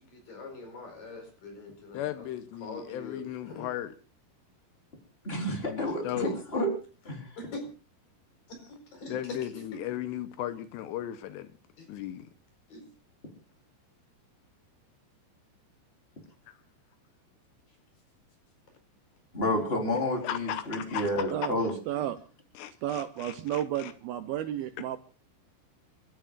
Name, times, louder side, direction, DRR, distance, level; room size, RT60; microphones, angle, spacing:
voice 1, 0.1-2.3 2.6-3.7 7.4-7.6 8.5-9.2 9.5-9.6 11.8-11.9 12.7-12.8, left 3 dB, 50° left, 6.2 m, -43 dB
voice 2, 1.9-3.9 5.6-6.4 9.1-11.5 11.9-12.3 20.2-21.1 21.4-21.5 22.6-23.9, left 12 dB, 80° left, 3.0 m, -36 dB
voice 3, 5.2-6.7 7.0-7.2 19.3-21.7, left 1 dB, 15° left, 3.8 m, -30 dB
voice 4, 21.9-22.2 22.8-25.0, right 11 dB, 75° right, 2.3 m, -32 dB
30.0 x 13.0 x 2.5 m
omnidirectional pair, 5.0 m